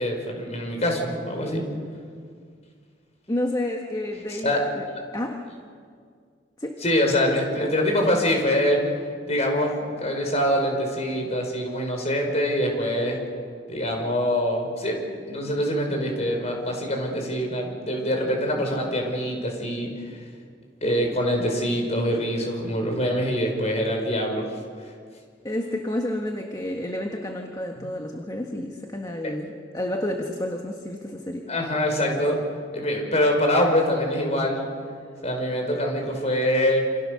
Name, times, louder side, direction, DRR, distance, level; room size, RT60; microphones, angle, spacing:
voice 1, 0.0-1.6 4.3-4.6 6.8-8.8 9.3-13.2 13.7-20.2 20.8-24.4 27.8-27.9 29.2-29.3 31.5-32.4 32.7-34.7 35.2-36.9, equal, 35° left, 2 dB, 5.6 m, -24 dB
voice 2, 3.3-4.8 5.1-5.4 6.6-6.8 25.4-31.5, left 1 dB, 20° left, 2 dB, 1.6 m, -30 dB
29.0 x 27.0 x 6.7 m, 2.1 s
head